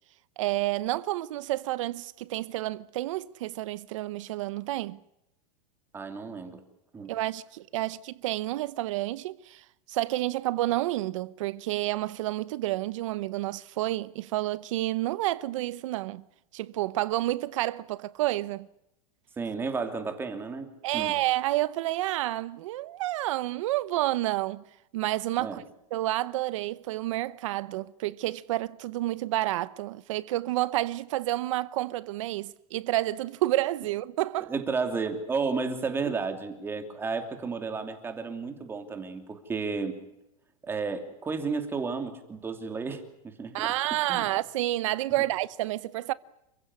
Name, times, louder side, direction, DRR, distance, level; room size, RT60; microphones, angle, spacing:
voice 1, 0.4-5.0 7.1-16.2 16.5-18.7 20.8-24.6 24.9-25.6 25.9-34.6 43.5-46.1, right 16 dB, 55° right, 0.9 m, -29 dB
voice 2, 5.9-6.6 6.9-7.1 19.4-21.2 25.4-25.6 34.5-40.0 40.6-43.7 44.1-44.3, right 4 dB, 10° right, 2.8 m, -32 dB
29.0 x 16.0 x 9.7 m
supercardioid pair, 165°, 20 cm